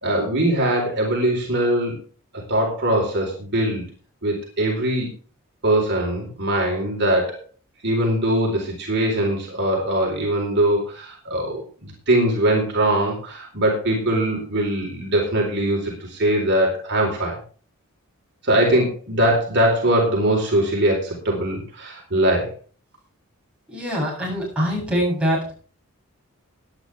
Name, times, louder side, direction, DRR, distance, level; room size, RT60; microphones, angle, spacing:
voice 1, 0.0-2.0 2.5-3.8 4.2-5.1 5.6-7.5 7.8-17.4 18.4-22.5, right 1 dB, 50° right, -1 dB, 4.2 m, -21 dB
voice 2, 23.7-25.4, equal, 5° right, -5 dB, 8.0 m, -23 dB
18.0 x 10.5 x 3.5 m, 0.40 s
head